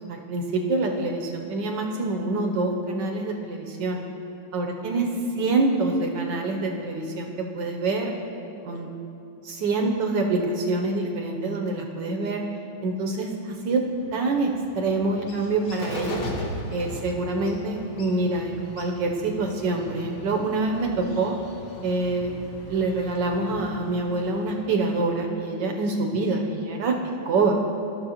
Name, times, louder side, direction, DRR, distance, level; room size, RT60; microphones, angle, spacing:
voice 1, 0.1-4.0 4.5-5.1 5.4-8.1 8.6-8.9 9.4-12.4 12.8-13.8 14.1-16.3 16.7-21.4 21.8-27.0 27.3-27.6, right 3 dB, 70° right, 2 dB, 1.2 m, -26 dB
Bird, 13.7-25.2, left 1 dB, 50° left, 1.2 m, -39 dB
15.0 x 6.1 x 2.8 m, 2.7 s
omnidirectional pair, 2.3 m